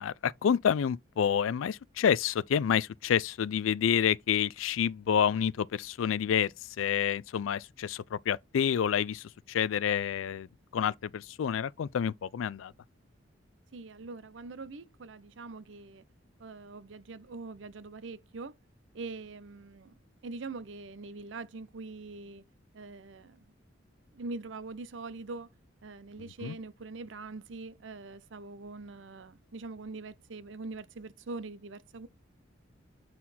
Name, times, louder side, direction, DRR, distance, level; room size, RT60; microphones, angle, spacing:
voice 1, 0.0-10.5 10.7-12.7 26.4-26.6, left 8 dB, 90° left, 0.4 m, -28 dB
voice 2, 13.7-16.0 16.4-18.6 18.9-19.9 20.2-22.4 22.7-23.5 24.1-25.5 25.8-32.1, right 3 dB, 70° right, 0.6 m, -43 dB
7.5 x 4.1 x 4.2 m
head